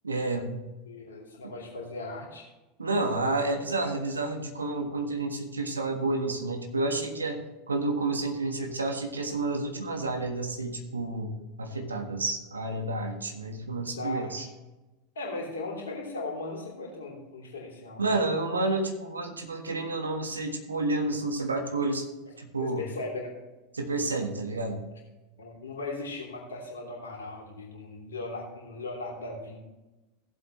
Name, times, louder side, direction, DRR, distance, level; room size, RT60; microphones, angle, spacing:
voice 1, 0.0-0.6 1.4-1.5 2.8-7.4 7.7-14.5 18.0-22.1 22.4-22.8 23.7-24.9, right 2 dB, 80° right, 5 dB, 1.5 m, -30 dB
voice 2, 0.9-2.5 13.9-14.5 15.1-18.2 22.6-23.4 25.4-29.7, left 2 dB, 70° left, -1 dB, 3.2 m, -38 dB
16.5 x 7.7 x 3.2 m, 1.1 s
figure-of-eight pair, 80°, 0 cm